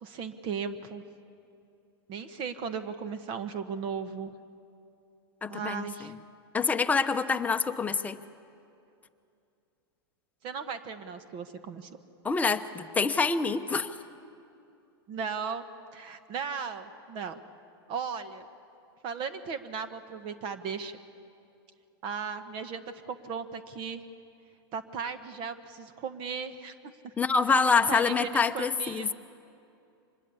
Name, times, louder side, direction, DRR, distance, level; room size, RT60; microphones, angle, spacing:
voice 1, 0.0-1.0 2.1-4.3 5.5-6.1 10.4-11.9 15.1-15.6 15.9-17.4 17.9-18.5 19.0-21.0 22.0-24.0 24.7-26.7 27.0-27.1 27.9-29.1, right 6 dB, 40° right, 10 dB, 1.2 m, -36 dB
voice 2, 5.4-6.1 6.5-8.2 12.2-13.9 27.2-29.1, left 5 dB, 10° left, 7 dB, 0.8 m, -26 dB
24.5 x 21.0 x 8.5 m, 2.6 s
hypercardioid pair, 130°, 13 cm